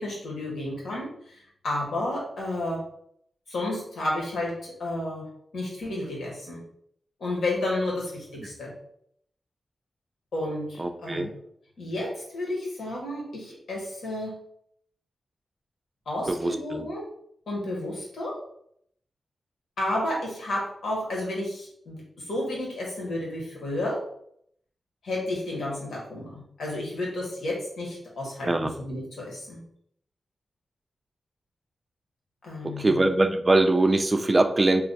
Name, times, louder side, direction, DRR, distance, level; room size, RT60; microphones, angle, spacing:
voice 1, 0.0-2.8 3.5-5.3 5.5-6.6 7.2-8.7 10.3-11.3 11.8-14.4 16.0-17.0 17.5-18.4 19.8-24.0 25.0-29.6 32.4-33.0, left 1 dB, 85° left, -3 dB, 1.4 m, -31 dB
voice 2, 10.8-11.3 16.3-16.9 28.5-28.7 32.8-34.9, right 2 dB, 30° right, 7 dB, 0.4 m, -22 dB
3.1 x 2.4 x 3.9 m, 0.69 s
cardioid pair, 75°, 0 cm